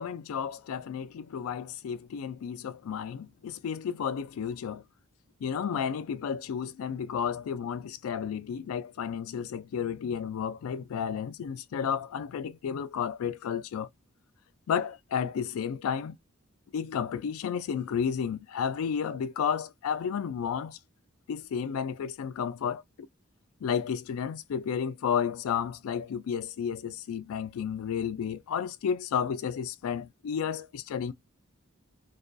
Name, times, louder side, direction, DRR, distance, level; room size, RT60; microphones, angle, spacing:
voice 1, 0.0-4.8 5.4-13.9 14.7-16.2 16.7-20.8 21.3-22.8 23.6-31.1, left 7 dB, 75° left, 0.3 m, -32 dB
2.3 x 2.2 x 2.4 m
head